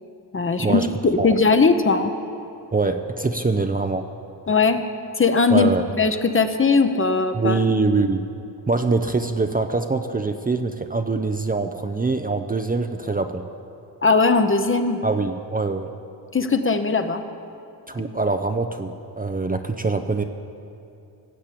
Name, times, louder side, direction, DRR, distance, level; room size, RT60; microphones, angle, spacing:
voice 1, 0.3-2.1 4.5-4.8 5.2-7.6 14.0-15.0 16.3-17.2, left 4 dB, 30° left, 8 dB, 1.0 m, -19 dB
voice 2, 2.7-4.1 5.5-5.9 7.3-8.3 8.7-13.5 15.0-15.9 17.9-20.2, right 3 dB, 20° right, 6 dB, 0.6 m, -24 dB
16.5 x 7.3 x 8.4 m, 2.6 s
cardioid pair, 70°, 42 cm